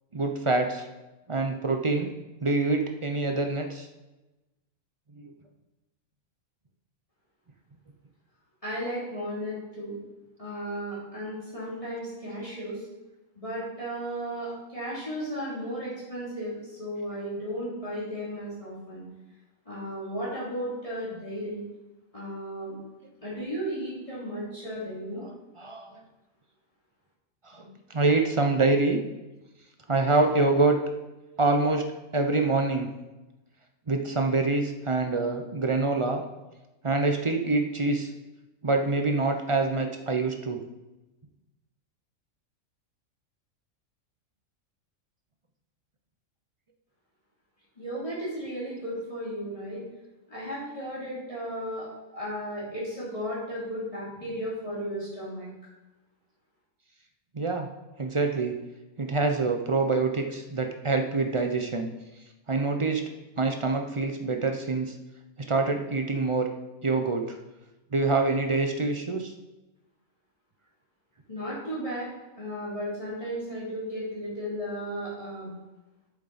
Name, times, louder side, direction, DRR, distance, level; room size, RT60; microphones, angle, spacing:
voice 1, 0.1-0.9 1.3-2.1 2.4-3.9 5.2-5.3 25.2-26.0 27.4-29.0 29.9-30.8 31.4-31.9 32.1-32.9 33.9-36.2 36.8-38.1 38.6-40.6 57.3-57.7 58.0-58.5 59.0-61.9 62.5-63.0 63.4-64.9 65.5-66.5 66.8-67.4 67.9-69.3, right 3 dB, 35° right, 4 dB, 0.5 m, -25 dB
voice 2, 8.6-10.0 10.4-12.8 13.4-19.0 19.7-21.6 22.1-22.7 23.2-25.2 47.8-49.8 50.3-51.9 52.1-55.5 71.3-72.1 72.4-75.5, equal, 25° left, -9 dB, 3.0 m, -34 dB
8.1 x 7.0 x 4.1 m, 1.0 s
omnidirectional pair, 1.4 m